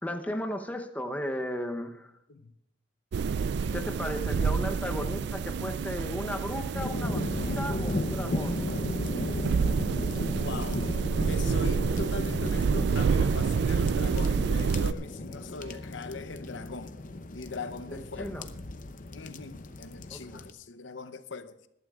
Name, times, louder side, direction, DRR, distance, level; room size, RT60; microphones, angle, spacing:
voice 1, 0.0-2.1 3.7-8.6 17.9-18.4 20.1-20.4, equal, 10° left, 0.8 m, -35 dB
sound 1, 3.1-14.9, right 5 dB, 65° right, 0.3 m, -28 dB
sound 2, 3.3-15.8, left 5 dB, 90° right, 1.5 m, -51 dB
sound 3, 6.7-20.5, left 2 dB, 45° left, 0.8 m, -35 dB
voice 2, 10.4-10.9 11.3-17.0 17.3-18.4 19.1-21.7, left 4 dB, 80° left, 0.8 m, -40 dB
21.0 x 12.0 x 2.4 m
head